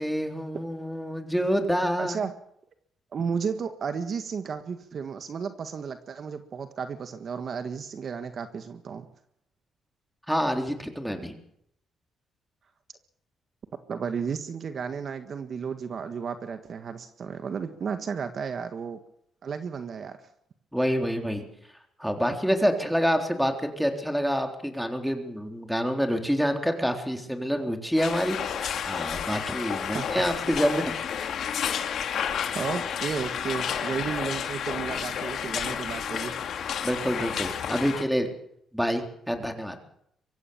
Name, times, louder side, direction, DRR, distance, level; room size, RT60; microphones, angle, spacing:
voice 1, 0.0-2.2 10.3-11.4 20.7-21.5 22.0-31.0 34.1-34.2 36.8-38.3 38.7-39.8, equal, ahead, 4 dB, 3.8 m, -27 dB
voice 2, 2.0-2.3 3.1-9.1 13.9-19.0 19.4-20.2 29.9-30.0 32.5-36.3, right 6 dB, 50° right, 8 dB, 1.6 m, -33 dB
sound 1, 28.0-38.1, left 8 dB, 65° left, 2.5 m, -31 dB
24.0 x 15.0 x 7.2 m, 0.71 s
cardioid pair, 90°, 0 cm